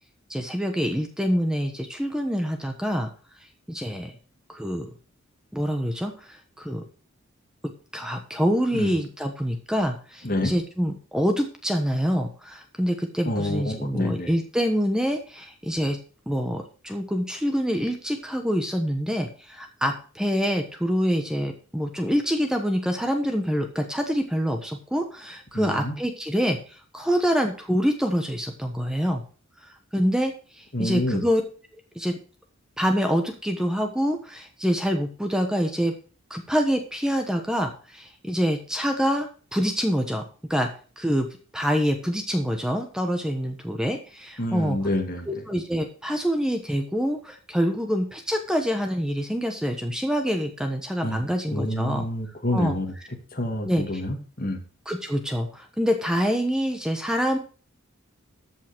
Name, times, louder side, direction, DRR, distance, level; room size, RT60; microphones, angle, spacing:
voice 1, 0.3-3.1 3.7-4.1 4.5-4.9 5.5-6.8 7.9-16.0 16.3-29.2 29.9-31.4 31.9-32.2 32.8-35.9 36.3-40.2 40.5-40.7 41.0-41.3 41.5-44.8 45.3-52.1 52.5-52.7 53.6-53.8 54.9-57.4, equal, 5° right, 4 dB, 1.1 m, -26 dB
voice 2, 13.2-14.3 25.5-26.0 30.7-31.2 44.4-45.4 51.0-52.9 53.3-54.6, left 1 dB, 45° left, 3 dB, 2.3 m, -28 dB
13.5 x 5.6 x 6.1 m, 0.39 s
head